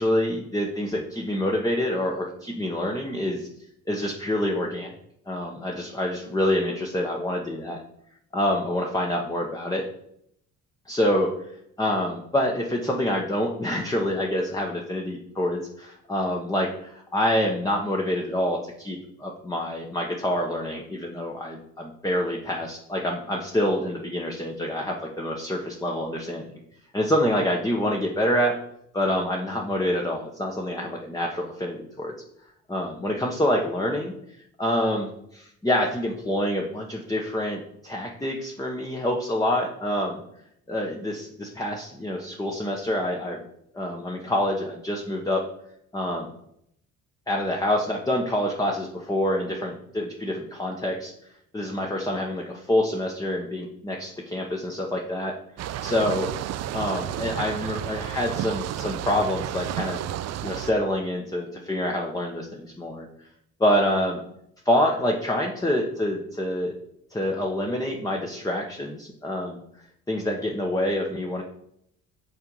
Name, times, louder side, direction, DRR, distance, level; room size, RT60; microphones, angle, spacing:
voice 1, 0.0-3.5 3.9-4.9 5.3-7.8 8.3-9.8 10.9-11.3 11.8-26.5 26.9-28.5 28.9-32.1 32.7-34.1 34.6-40.2 40.7-43.4 43.7-45.4 45.9-46.4 47.3-51.1 51.5-55.3 55.8-56.3 56.7-60.0 60.4-63.1 63.6-64.2 64.6-66.7 67.1-69.6 70.1-71.4, left 1 dB, 10° left, 0 dB, 0.9 m, -26 dB
sound 1, 55.6-60.7, right 11 dB, 55° right, 0.4 m, -32 dB
5.6 x 3.6 x 5.4 m, 0.73 s
supercardioid pair, 65°, 31 cm